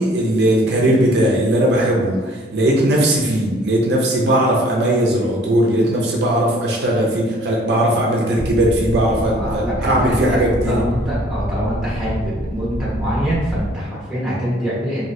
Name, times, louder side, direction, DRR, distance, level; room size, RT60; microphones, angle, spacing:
voice 1, 0.0-10.8, right 1 dB, 65° right, -2 dB, 0.5 m, -18 dB
sound 1, 8.4-13.7, right 1 dB, 35° right, 0.8 m, -26 dB
voice 2, 9.3-15.0, equal, 5° right, -9 dB, 1.1 m, -24 dB
3.2 x 2.6 x 2.6 m, 1.4 s
head